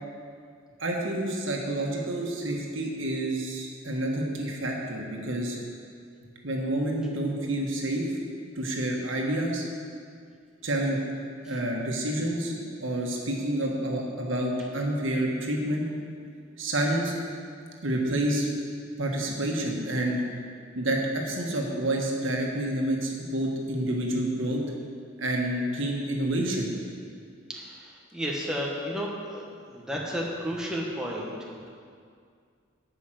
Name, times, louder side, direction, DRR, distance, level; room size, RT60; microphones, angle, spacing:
voice 1, 0.8-5.6 6.4-8.1 8.6-9.6 10.6-11.0 11.5-12.5 12.8-15.9 16.6-17.1 17.8-18.5 19.0-20.2 20.8-24.6 25.2-26.7, right 1 dB, 80° right, -1 dB, 1.6 m, -28 dB
voice 2, 27.5-31.7, equal, 5° right, -3 dB, 1.3 m, -33 dB
11.0 x 5.6 x 7.6 m, 2.2 s
head